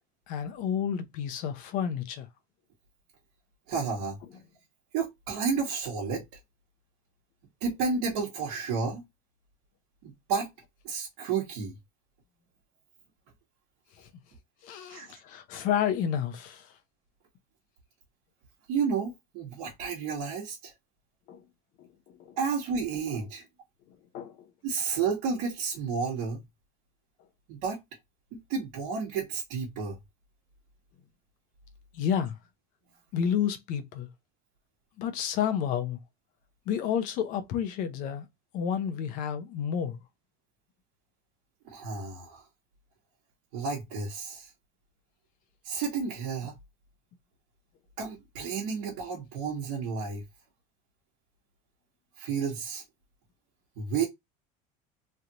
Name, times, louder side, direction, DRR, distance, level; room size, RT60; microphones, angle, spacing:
voice 1, 0.3-2.3 14.0-14.1 14.6-16.7 21.3-21.4 21.8-21.9 22.2-22.4 24.1-24.4 31.9-32.4 33.1-34.1 35.0-36.0 36.7-38.3 38.5-40.0, left 8 dB, 50° left, 0.6 m, -30 dB
voice 2, 3.7-4.2 4.9-6.2 7.6-9.0 10.0-10.5 10.8-11.8 14.9-15.1 18.7-20.7 22.4-23.4 24.6-26.4 27.5-27.8 28.3-30.0 41.6-42.4 43.5-44.5 45.6-46.5 48.0-50.2 52.2-52.8 53.8-54.1, right 5 dB, 65° right, 1.3 m, -31 dB
3.2 x 2.5 x 2.8 m
cardioid pair, 170°, 18 cm